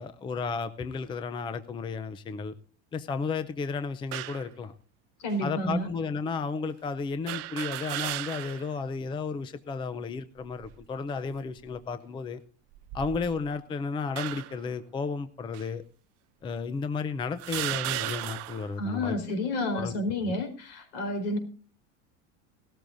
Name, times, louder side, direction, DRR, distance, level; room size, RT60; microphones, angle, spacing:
voice 1, 0.0-2.5 2.9-4.7 5.4-12.4 12.9-15.8 16.4-19.2 19.7-19.9, left 4 dB, 15° left, 12 dB, 0.5 m, -33 dB
sound 1, 4.1-4.5 5.3-5.4 7.3-8.7 9.1-9.2 10.4-10.8 11.5-11.8 12.7-13.5 14.2-14.7 15.5-15.7 16.5-16.6 17.4-18.7, right 18 dB, 50° right, 0.6 m, -35 dB
voice 2, 5.2-5.9 18.8-21.4, left 1 dB, 70° left, 6 dB, 4.5 m, -30 dB
18.0 x 13.5 x 2.6 m, 0.41 s
supercardioid pair, 145°, 33 cm